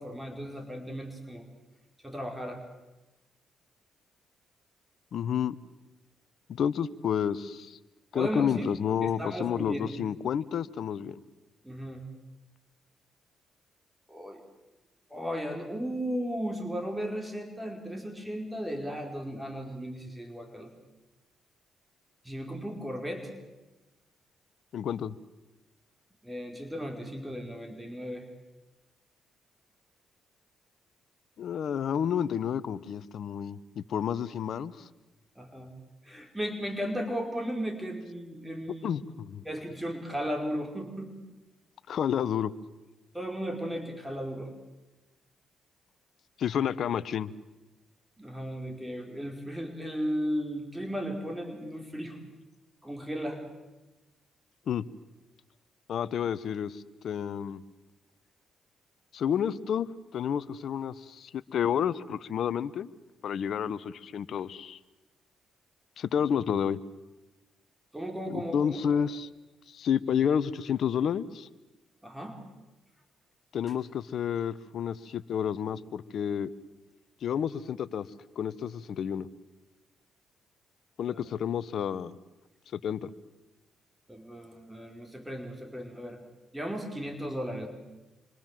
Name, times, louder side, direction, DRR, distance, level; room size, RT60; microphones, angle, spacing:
voice 1, 0.0-1.5 2.0-2.6 8.1-8.7 9.0-9.9 11.6-12.1 14.1-14.4 15.1-20.7 22.2-23.3 26.2-28.3 35.4-35.7 36.0-38.9 39.4-41.1 43.1-44.5 48.2-52.2 52.8-53.4 67.9-69.0 72.0-72.4 81.0-81.2 84.1-86.2 86.5-87.7, equal, 10° right, 3 dB, 4.8 m, -35 dB
voice 2, 5.1-5.6 6.5-7.8 8.1-11.2 24.7-25.1 31.4-33.6 33.9-34.9 38.8-39.4 41.9-42.5 46.4-47.3 54.7-54.9 55.9-57.6 59.1-59.9 60.1-62.9 63.2-64.8 66.0-66.8 68.3-69.3 69.7-71.5 73.5-76.5 77.2-78.1 78.4-79.3 81.0-82.2 82.7-83.1, left 8 dB, 65° left, 17 dB, 1.0 m, -30 dB
27.5 x 25.0 x 7.6 m, 1.1 s
cardioid pair, 75°, 0 cm